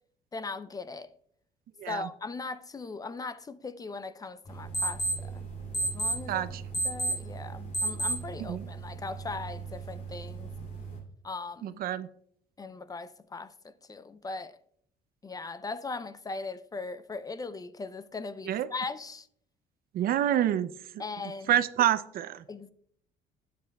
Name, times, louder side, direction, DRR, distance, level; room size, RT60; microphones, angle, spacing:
voice 1, 0.3-1.1 1.9-5.5 5.9-6.6 6.8-10.5 11.2-11.8 12.6-14.6 15.2-19.3 21.0-21.6 22.5-22.7, left 3 dB, 20° left, 0.5 m, -39 dB
sound 1, 4.5-11.0, right 2 dB, 50° left, 2.6 m, -34 dB
voice 2, 6.3-6.6 8.4-8.6 11.6-12.1 18.5-18.7 19.9-20.7 21.5-22.4, right 11 dB, 60° right, 0.5 m, -27 dB
12.0 x 8.5 x 2.3 m
cardioid pair, 110°, 17 cm